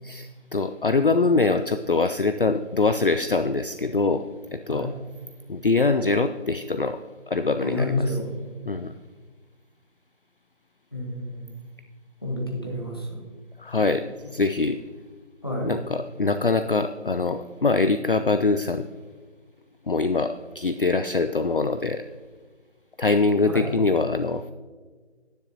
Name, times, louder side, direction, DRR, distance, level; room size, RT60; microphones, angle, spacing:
voice 1, 0.0-4.3 4.5-4.9 5.5-7.0 7.3-8.2 8.7-8.9 13.6-14.8 15.6-18.9 19.9-22.0 23.0-24.4, left 3 dB, 50° left, 9 dB, 0.4 m, -23 dB
voice 2, 7.6-8.3 10.9-11.6 12.2-13.2 15.4-15.8 23.5-23.6, left 1 dB, 20° left, 0 dB, 1.2 m, -29 dB
13.5 x 10.5 x 2.7 m, 1.4 s
figure-of-eight pair, 180°, 34 cm